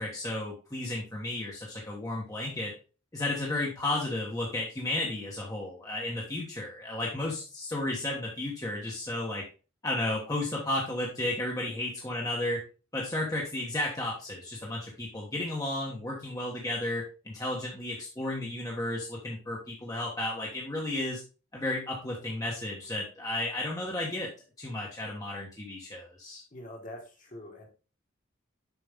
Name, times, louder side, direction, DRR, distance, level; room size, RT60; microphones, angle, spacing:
voice 1, 0.0-2.7 3.1-9.4 9.8-12.6 12.9-21.2 21.5-24.3 24.6-26.4, left 1 dB, 15° left, -3 dB, 1.2 m, -33 dB
voice 2, 26.5-27.7, left 1 dB, 40° left, 1 dB, 1.7 m, -44 dB
7.2 x 5.1 x 3.5 m, 0.34 s
head